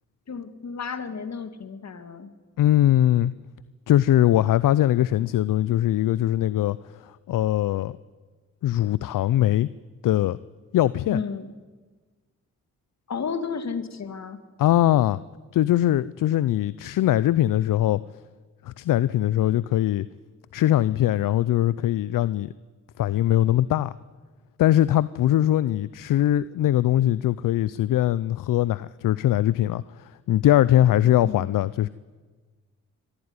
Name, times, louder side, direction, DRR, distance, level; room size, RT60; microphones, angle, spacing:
voice 1, 0.3-2.3 11.1-11.5 13.1-14.4 31.2-31.5, left 5 dB, 55° left, 2.1 m, -32 dB
voice 2, 2.6-3.3 3.9-8.0 8.6-9.7 10.0-10.4 10.7-11.2 14.6-15.2 15.5-18.0 18.6-20.1 20.5-22.5 23.0-23.9 24.6-31.9, left 13 dB, 75° left, 0.5 m, -21 dB
23.5 x 14.0 x 9.6 m
cardioid pair, 60°, 33 cm